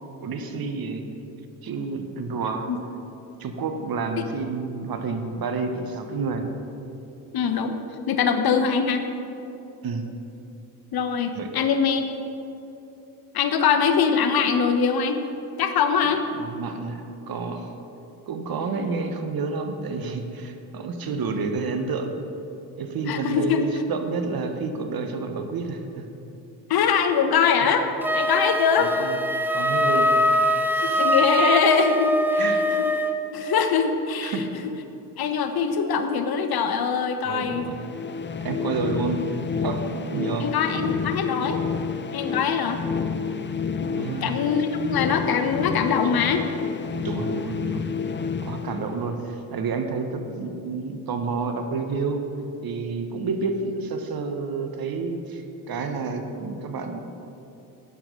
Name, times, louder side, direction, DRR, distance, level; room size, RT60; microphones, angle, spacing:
voice 1, 0.2-1.0 1.6-2.7 3.4-6.5 9.8-10.1 11.3-11.5 16.4-17.7 18.3-22.2 22.8-26.1 28.8-29.2 29.5-30.1 30.7-31.0 32.4-32.6 34.2-34.4 37.2-37.8 38.4-40.5 43.9-44.3 47.0-47.8 48.4-52.2 52.6-57.0, right 4 dB, 45° right, 6 dB, 1.4 m, -29 dB
voice 2, 7.3-7.8 8.1-9.1 10.9-12.0 13.3-15.2 15.6-16.2 23.1-23.7 26.7-27.9 28.1-28.9 30.8-32.4 32.7-32.8 33.3-34.4 35.2-37.7 40.4-41.6 42.1-42.8 43.8-46.4, left 6 dB, 50° left, 7 dB, 1.1 m, -23 dB
Wind instrument woodwind instrument, 28.0-33.2, equal, 5° right, 0.9 m, -22 dB
sound 1, 37.5-49.4, left 6 dB, 25° left, 0.6 m, -30 dB
12.0 x 8.9 x 5.3 m, 2.9 s
hypercardioid pair, 55°, 49 cm